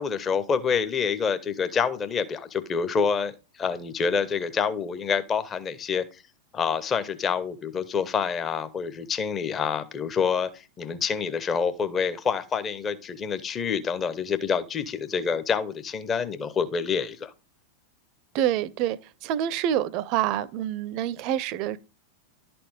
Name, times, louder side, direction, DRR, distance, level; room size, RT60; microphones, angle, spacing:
voice 1, 0.0-6.2 6.5-17.3, left 6 dB, 25° left, 0.8 m, -27 dB
voice 2, 18.3-21.8, right 11 dB, 40° right, 0.6 m, -27 dB
11.5 x 4.3 x 5.0 m
figure-of-eight pair, 90°, 0 cm